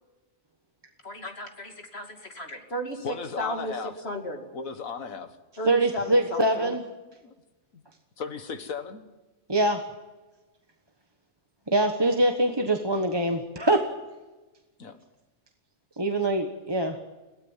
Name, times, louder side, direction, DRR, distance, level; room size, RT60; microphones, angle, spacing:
voice 1, 1.0-4.4 5.6-6.8, equal, 50° left, 4 dB, 2.8 m, -35 dB
voice 2, 3.0-3.9 4.5-5.3 7.2-7.3 7.7-7.8 8.2-9.0 14.8-15.0, left 5 dB, 75° left, 8 dB, 2.0 m, -35 dB
voice 3, 5.7-6.8 9.5-9.8 11.7-13.8 16.0-17.0, right 1 dB, 20° right, 4 dB, 1.2 m, -24 dB
22.5 x 16.5 x 7.4 m, 1.2 s
omnidirectional pair, 1.4 m